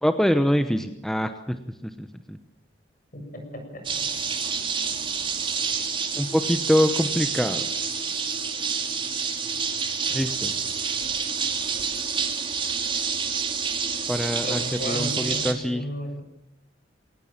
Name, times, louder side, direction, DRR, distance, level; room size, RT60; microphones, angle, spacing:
voice 1, 0.0-2.4 6.2-7.7 10.1-10.5 14.1-15.8, equal, ahead, 8 dB, 0.9 m, -25 dB
voice 2, 3.1-3.8 14.4-16.2, equal, 50° left, 4 dB, 7.3 m, -34 dB
sound 1, 3.8-15.5, right 5 dB, 25° right, 2.6 m, -28 dB
22.5 x 18.5 x 7.5 m, 0.82 s
head